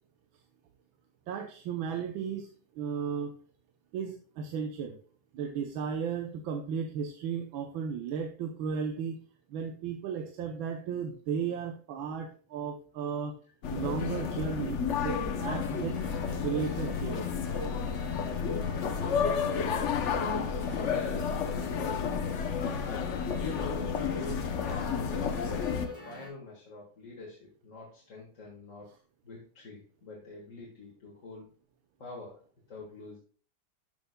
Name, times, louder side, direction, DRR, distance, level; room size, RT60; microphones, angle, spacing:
voice 1, 1.3-2.5 2.7-3.3 3.9-5.0 5.3-9.2 9.5-13.4 13.7-16.0 16.4-17.3, right 6 dB, 75° right, 5 dB, 1.5 m, -34 dB
sound 1, 13.6-25.9, left 6 dB, 65° left, 0.7 m, -31 dB
sound 2, 15.6-26.3, left 2 dB, 15° left, 4.3 m, -45 dB
voice 2, 20.9-22.1 22.8-28.9 29.2-31.5 32.0-32.4 32.7-33.2, left 3 dB, 40° left, -3 dB, 1.9 m, -45 dB
12.0 x 6.7 x 2.2 m, 0.42 s
omnidirectional pair, 2.2 m